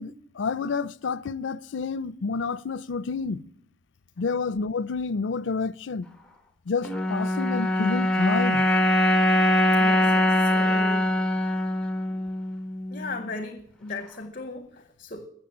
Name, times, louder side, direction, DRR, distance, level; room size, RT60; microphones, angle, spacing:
voice 1, 0.0-3.4 4.2-6.1 6.7-8.6, left 4 dB, 80° left, 0.5 m, -29 dB
sound 1, 6.8-13.3, left 1 dB, 5° left, 1.4 m, -23 dB
voice 2, 9.8-11.1 12.9-15.3, left 3 dB, 45° left, 0.9 m, -37 dB
15.5 x 7.4 x 9.8 m
head